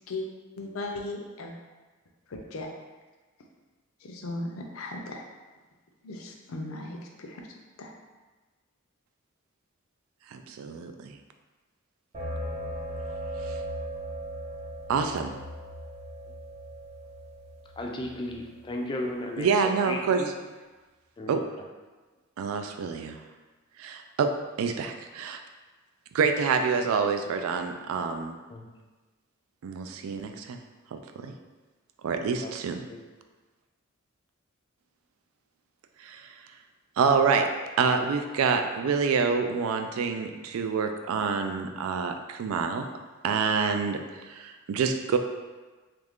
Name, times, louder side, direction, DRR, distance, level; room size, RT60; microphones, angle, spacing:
voice 1, 0.6-1.5 2.3-2.7 4.0-5.2 6.0-7.5 7.8-7.9, left 2 dB, 75° left, 1 dB, 0.5 m, -37 dB
voice 2, 10.3-11.2 13.5-13.6 14.9-15.3 19.4-20.2 21.3-21.4 22.4-23.2 23.8-24.3 24.6-25.4 26.1-28.4 29.6-30.6 30.9-31.4 32.0-32.8 36.0-36.3 37.0-37.5 37.8-42.9 43.2-45.2, right 5 dB, 85° right, 6 dB, 0.3 m, -27 dB
sound 1, 12.1-18.7, right 1 dB, 30° right, 0.7 m, -38 dB
voice 3, 17.8-20.3 21.2-21.3 28.5-28.7 32.4-32.5 32.9-33.0, left 1 dB, 25° left, 1 dB, 0.4 m, -35 dB
3.1 x 2.4 x 3.5 m, 1.3 s
head